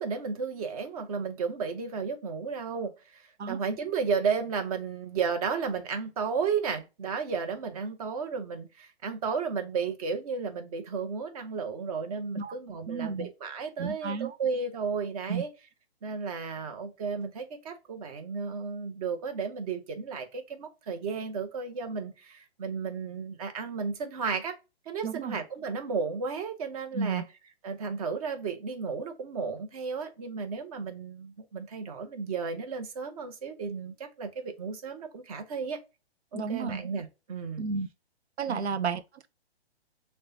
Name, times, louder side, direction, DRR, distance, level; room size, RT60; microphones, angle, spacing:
voice 1, 0.0-15.5 16.0-24.6 24.9-27.2 27.6-35.8 36.3-37.6 38.5-38.6, right 5 dB, 35° right, 0.8 m, -33 dB
voice 2, 12.9-13.3 13.8-14.4 15.3-15.4 25.0-25.4 26.9-27.3 36.3-36.8 37.6-37.9 38.4-39.3, right 5 dB, 85° right, 0.5 m, -32 dB
6.4 x 2.2 x 2.6 m
figure-of-eight pair, 130°, 32 cm